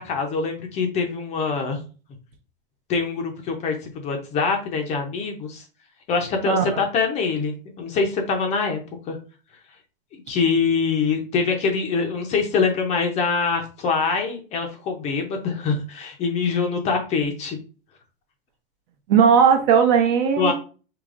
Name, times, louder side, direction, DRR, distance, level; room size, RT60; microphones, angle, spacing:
voice 1, 0.0-1.8 2.9-5.6 6.1-8.8 9.1-9.2 10.1-17.6 20.4-20.5, left 5 dB, 25° left, 3 dB, 0.6 m, -24 dB
voice 2, 6.5-6.8 19.1-20.5, right 7 dB, 40° right, 6 dB, 0.8 m, -17 dB
4.9 x 3.0 x 2.5 m, 0.35 s
supercardioid pair, 150°, 29 cm